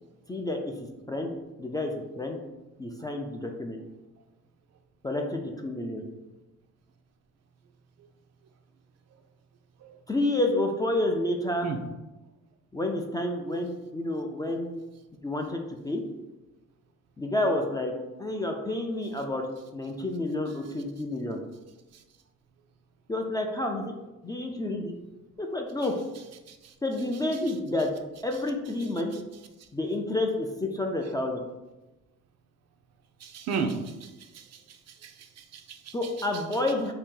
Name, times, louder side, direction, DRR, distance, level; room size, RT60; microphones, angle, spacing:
voice 1, 0.3-1.3 1.6-2.4 2.8-3.8 5.0-6.0 10.1-11.7 12.7-14.8 15.2-16.0 17.2-17.9 18.2-19.4 19.7-21.4 23.1-24.0 24.2-24.9 25.4-25.9 26.8-27.9 28.2-29.1 29.7-31.4 35.9-36.9, left 1 dB, 15° left, 2 dB, 0.3 m, -29 dB
voice 2, 33.2-34.1 34.3-34.5 35.0-35.9, right 5 dB, 60° right, 5 dB, 0.4 m, -33 dB
2.8 x 2.5 x 3.7 m, 1.1 s
cardioid pair, 90°, 30 cm